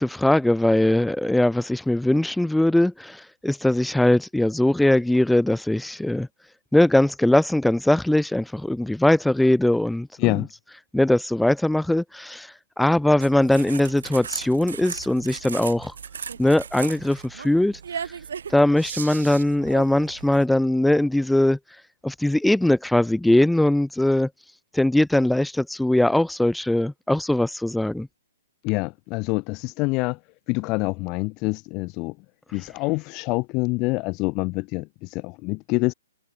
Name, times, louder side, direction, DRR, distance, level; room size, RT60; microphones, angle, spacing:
voice 1, 0.0-6.3 6.7-10.5 10.9-12.5 12.8-15.9 16.4-17.8 18.5-21.6 22.0-24.3 24.7-28.1, left 1 dB, ahead, 1.5 m, -20 dB
sound 1, 13.2-20.4, right 7 dB, 65° right, 7.0 m, -36 dB
voice 2, 28.6-30.2 30.5-32.1 32.5-35.9, left 26 dB, 30° left, 0.7 m, -26 dB
hypercardioid pair, 130°, 0 cm